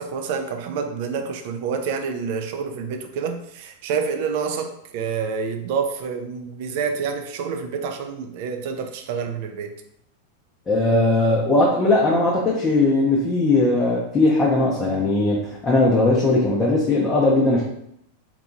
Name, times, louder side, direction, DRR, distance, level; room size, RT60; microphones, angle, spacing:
voice 1, 0.0-9.7, right 6 dB, 55° right, 5 dB, 0.4 m, -28 dB
voice 2, 10.7-17.6, left 2 dB, 20° left, -4 dB, 0.6 m, -19 dB
2.7 x 2.2 x 2.6 m, 0.76 s
figure-of-eight pair, 90°, 0 cm